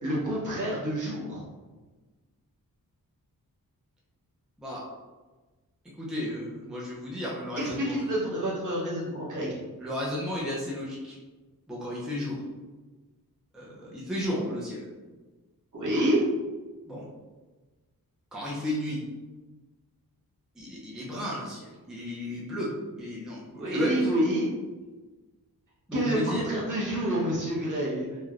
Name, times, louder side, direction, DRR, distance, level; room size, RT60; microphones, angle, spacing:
voice 1, 0.0-1.4 7.6-9.6 15.7-16.2 23.5-24.5 25.9-28.2, right 1 dB, 55° right, -6 dB, 1.0 m, -28 dB
voice 2, 6.0-8.1 9.8-11.2 11.7-12.4 13.5-14.9 16.9-17.0 18.3-19.0 20.6-22.7 23.0-23.4 23.7-24.1 25.9-26.4, left 1 dB, ahead, -5 dB, 0.5 m, -33 dB
3.2 x 2.2 x 2.4 m, 1.3 s
wide cardioid pair, 115°, 36 cm